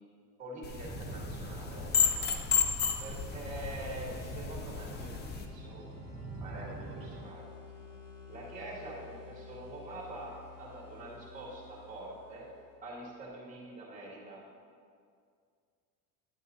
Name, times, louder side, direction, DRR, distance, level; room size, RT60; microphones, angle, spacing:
voice 1, 0.4-1.9 3.0-5.8 6.4-7.5 8.3-12.5 12.8-14.4, right 1 dB, 20° right, -4 dB, 2.2 m, -45 dB
sound 1, 0.6-5.5, left 7 dB, 25° left, 0.4 m, -33 dB
sound 2, 0.8-7.2, right 4 dB, 70° right, 1.3 m, -45 dB
sound 3, 3.3-12.9, left 6 dB, 70° left, 1.8 m, -51 dB
10.5 x 8.6 x 2.8 m, 2.2 s
cardioid pair, 160°, 39 cm